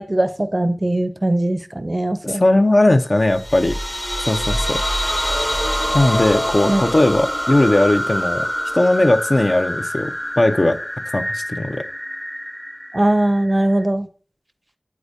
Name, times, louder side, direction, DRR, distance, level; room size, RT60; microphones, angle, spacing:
voice 1, 0.0-2.4 6.7-6.8 12.9-14.1, right 1 dB, 35° right, 12 dB, 0.4 m, -20 dB
voice 2, 2.2-3.8 4.3-4.8 5.9-8.5 8.7-10.8 11.1-11.8, left 1 dB, 50° left, 8 dB, 0.5 m, -18 dB
sound 1, 3.2-13.8, equal, 15° left, 0.7 m, -25 dB
8.1 x 4.7 x 2.7 m, 0.42 s
wide cardioid pair, 40°, 0 cm